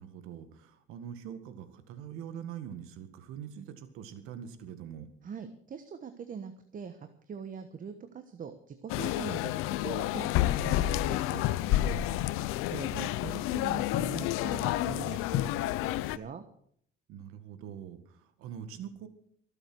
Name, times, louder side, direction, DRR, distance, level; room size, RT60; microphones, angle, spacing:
voice 1, 0.0-5.1 12.9-13.0 17.1-19.1, right 9 dB, 85° right, 10 dB, 1.8 m, -44 dB
voice 2, 5.2-12.1 12.7-16.4, right 6 dB, 40° right, 8 dB, 1.2 m, -42 dB
sound 1, 8.9-16.2, left 15 dB, 90° left, 0.7 m, -30 dB
23.0 x 7.9 x 6.2 m, 0.64 s
cardioid pair, 115°, 21 cm